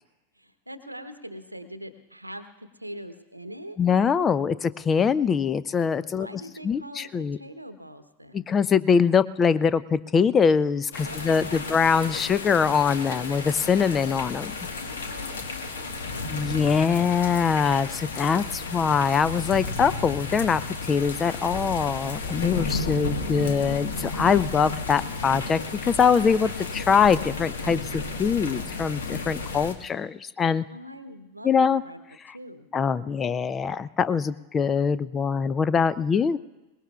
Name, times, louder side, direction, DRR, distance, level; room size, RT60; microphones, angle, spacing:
voice 1, 0.4-3.8 6.1-8.5 11.0-12.4 14.7-16.6 30.7-32.0 32.3-32.7, equal, 85° right, 10 dB, 0.9 m, -43 dB
voice 2, 3.8-7.4 8.3-14.5 16.3-20.6 20.9-30.6 31.4-31.8 32.2-32.3 32.7-36.4, left 6 dB, 20° left, 16 dB, 0.4 m, -23 dB
sound 1, 10.9-29.7, left 3 dB, 65° left, 1.4 m, -33 dB
22.5 x 20.0 x 2.4 m, 1.0 s
figure-of-eight pair, 90°, 0 cm